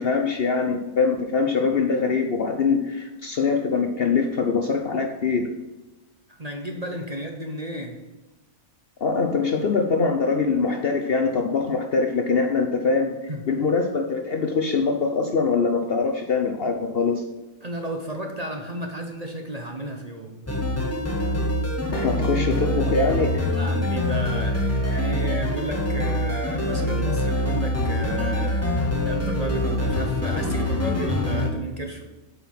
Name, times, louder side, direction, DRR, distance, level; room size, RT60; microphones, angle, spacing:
voice 1, 0.0-5.5 9.0-13.2 13.5-17.2 21.9-23.5, left 4 dB, 55° left, 4 dB, 0.7 m, -23 dB
voice 2, 6.3-8.0 13.3-13.5 17.6-20.4 23.6-32.0, right 1 dB, 35° right, 2 dB, 0.8 m, -33 dB
sound 1, 20.5-31.5, left 1 dB, 10° left, 0.9 m, -24 dB
8.3 x 5.5 x 5.9 m, 1.1 s
omnidirectional pair, 1.6 m